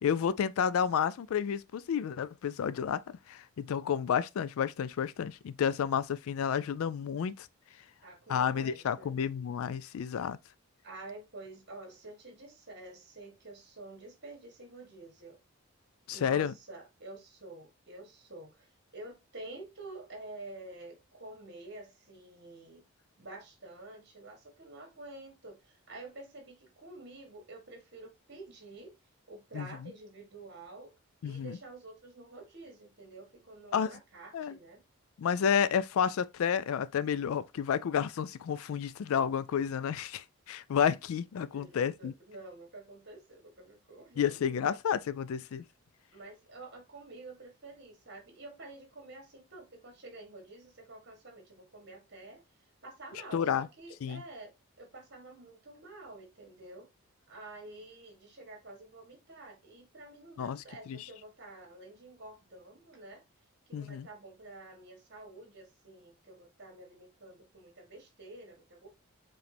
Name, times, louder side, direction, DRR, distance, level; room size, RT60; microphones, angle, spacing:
voice 1, 0.0-3.0 3.3-7.5 8.3-10.4 16.1-16.5 29.5-29.7 31.2-31.6 33.7-33.9 34.3-34.5 35.2-42.1 44.2-45.6 53.3-53.7 54.0-54.2 60.4-61.1 63.7-64.1, left 8 dB, 70° left, 0.3 m, -31 dB
voice 2, 8.0-9.2 10.8-15.4 16.1-22.9 23.2-28.9 29.3-30.9 31.2-34.8 41.5-44.4 46.1-52.4 52.8-56.9 57.3-63.2 63.7-68.9, right 2 dB, 50° right, 1.7 m, -49 dB
4.8 x 3.2 x 3.3 m
head